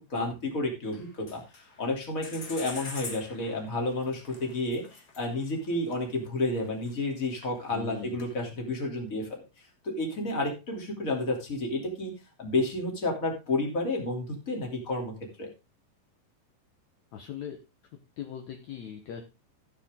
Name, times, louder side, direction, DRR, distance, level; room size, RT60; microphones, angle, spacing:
voice 1, 0.1-1.4 1.8-9.4 9.8-12.1 12.4-15.1 15.4-15.5, left 2 dB, 20° left, 1 dB, 2.8 m, -31 dB
sound 1, 0.9-1.9 2.2-6.9 7.2-8.4, left 4 dB, 45° left, 1.2 m, -44 dB
voice 2, 7.7-8.2 17.1-17.6 18.2-19.2, left 9 dB, 65° left, 4 dB, 1.8 m, -39 dB
14.5 x 7.0 x 3.7 m, 0.28 s
omnidirectional pair, 4.7 m